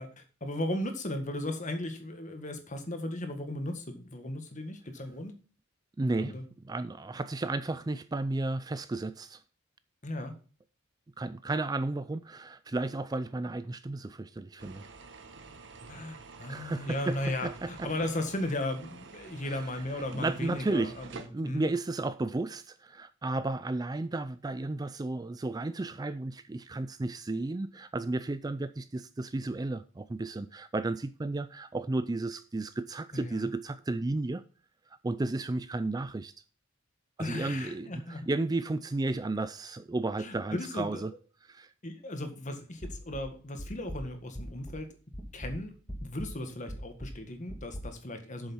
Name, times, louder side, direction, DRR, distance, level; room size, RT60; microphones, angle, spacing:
voice 1, 0.0-5.3 6.2-6.4 10.0-10.4 15.9-21.7 33.1-33.5 37.2-38.3 40.2-41.1 41.8-44.9 45.3-45.7 46.0-48.5, left 1 dB, 40° left, 1.7 m, -36 dB
voice 2, 6.0-6.3 6.6-9.4 11.2-14.8 16.5-17.9 19.4-34.4 35.0-36.3 37.2-41.1 41.4-41.7, right 2 dB, 20° right, 0.4 m, -33 dB
sound 1, 14.6-21.3, right 4 dB, 60° right, 1.2 m, -49 dB
sound 2, 42.8-44.9 45.1-47.8, equal, 5° left, 2.2 m, -41 dB
8.0 x 7.1 x 5.5 m
head